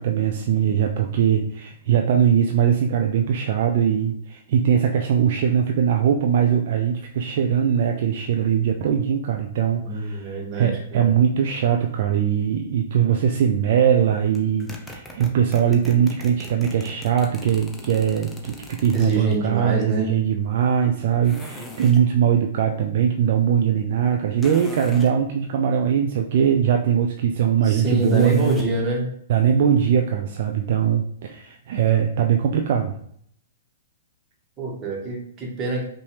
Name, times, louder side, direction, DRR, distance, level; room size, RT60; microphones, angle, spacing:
voice 1, 0.0-28.5 29.3-33.0, right 8 dB, 55° right, 3 dB, 0.4 m, -21 dB
voice 2, 9.8-11.1 18.9-20.1 27.6-29.1 34.6-35.8, right 1 dB, 30° right, -1 dB, 1.5 m, -25 dB
sound 1, 14.3-19.4 21.2-22.1 24.4-25.1 27.8-28.8, left 1 dB, 10° left, 0.7 m, -40 dB
5.4 x 2.7 x 3.3 m, 0.65 s
figure-of-eight pair, 110°, 0 cm